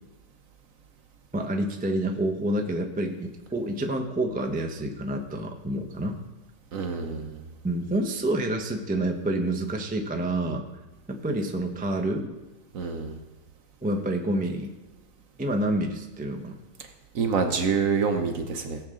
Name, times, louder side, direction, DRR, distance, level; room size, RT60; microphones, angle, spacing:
voice 1, 1.3-6.2 7.6-10.6 11.1-12.4 13.8-14.7 15.4-16.6, right 1 dB, 10° right, 3 dB, 0.5 m, -28 dB
voice 2, 6.7-7.4 12.7-13.2 17.1-18.8, right 5 dB, 55° right, 6 dB, 1.1 m, -26 dB
17.5 x 7.2 x 3.8 m, 1.2 s
omnidirectional pair, 1.9 m